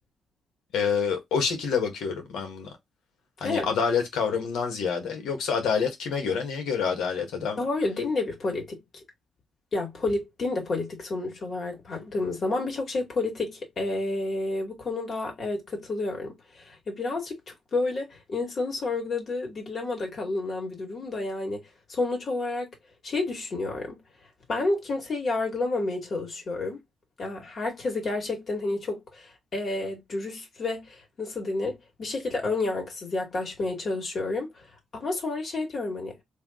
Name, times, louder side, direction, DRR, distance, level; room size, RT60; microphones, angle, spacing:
voice 1, 0.7-2.7 3.4-7.6, left 6 dB, 80° left, 1.4 m, -27 dB
voice 2, 7.6-8.8 9.7-21.6 21.9-22.7 23.0-24.0 24.5-26.8 27.2-34.7 34.9-36.1, left 2 dB, 50° left, 2.2 m, -30 dB
3.4 x 2.8 x 3.6 m
cardioid pair, 80°, 0 cm